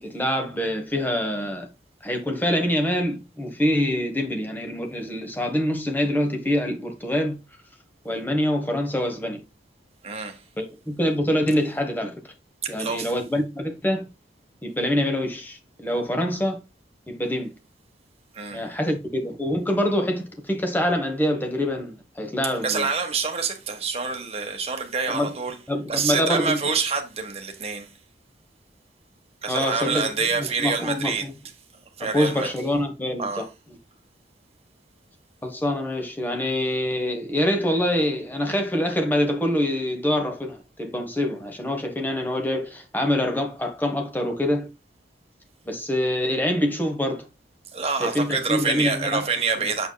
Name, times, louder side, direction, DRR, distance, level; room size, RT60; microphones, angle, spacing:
voice 1, 0.0-1.7 2.0-7.3 8.0-9.4 10.6-12.1 12.7-14.1 14.6-16.6 17.1-17.5 18.5-22.9 25.1-25.4 25.7-26.6 29.5-30.1 30.4-31.3 32.0-33.4 35.4-44.7 45.7-47.3 48.0-49.3, left 1 dB, 10° left, 1.2 m, -25 dB
voice 2, 10.0-10.4 12.6-13.1 18.3-18.7 22.6-25.6 25.9-27.9 29.4-31.3 32.0-32.5 33.2-33.5 47.7-49.9, right 5 dB, 35° right, 1.3 m, -27 dB
6.7 x 6.2 x 2.3 m
head